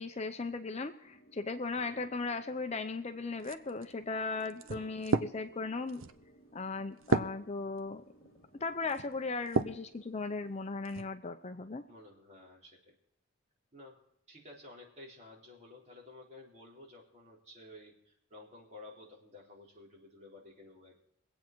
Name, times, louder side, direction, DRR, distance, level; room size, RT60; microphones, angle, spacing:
voice 1, 0.0-6.0 6.5-8.0 8.6-11.8, left 3 dB, 30° left, 8 dB, 0.6 m, -37 dB
sound 1, 1.0-11.6, equal, 50° left, 1.7 m, -63 dB
voice 2, 1.8-2.1 4.7-5.0 11.9-13.0 13.7-14.0 14.3-21.0, left 2 dB, 35° right, -3 dB, 3.9 m, -53 dB
sound 2, 3.4-9.9 10.4-11.1, right 4 dB, 70° right, 0.7 m, -36 dB
23.0 x 8.4 x 4.6 m, 0.73 s
head